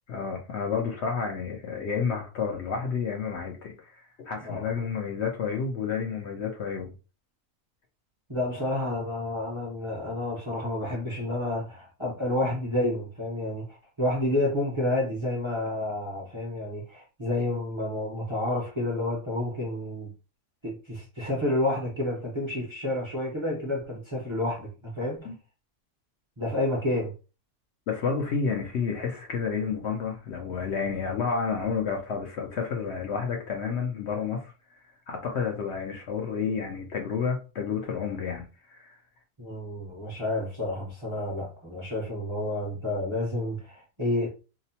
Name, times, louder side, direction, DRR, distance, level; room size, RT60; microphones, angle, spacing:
voice 1, 0.1-6.9 25.2-25.3 27.9-34.5 35.1-38.4 38.7-39.0, left 6 dB, 65° left, 0.8 m, -30 dB
voice 2, 8.3-20.1 20.6-25.3 26.4-27.1 39.4-44.3, left 1 dB, 30° right, 0.6 m, -30 dB
2.8 x 2.1 x 2.7 m
omnidirectional pair, 1.5 m